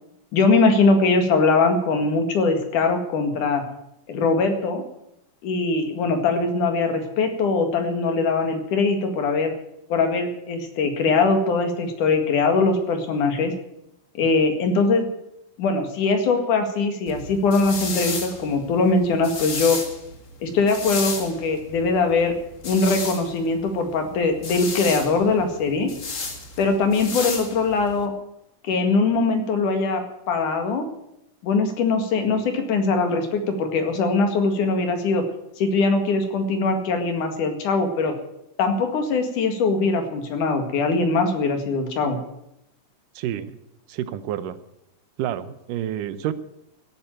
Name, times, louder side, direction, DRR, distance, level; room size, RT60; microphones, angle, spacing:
voice 1, 0.3-3.6 4.1-4.8 5.4-9.5 9.9-13.5 14.2-15.1 15.6-19.8 20.4-25.9 26.6-28.1 28.6-30.9 31.4-35.2 35.6-38.1 38.6-42.2, left 3 dB, 75° left, 6 dB, 3.5 m, -21 dB
sound 1, 17.1-28.0, left 4 dB, 50° left, 0.9 m, -33 dB
voice 2, 43.2-43.6 43.9-44.6 45.2-46.3, right 11 dB, 85° right, 14 dB, 2.5 m, -29 dB
15.5 x 9.0 x 9.1 m, 0.80 s
omnidirectional pair, 3.6 m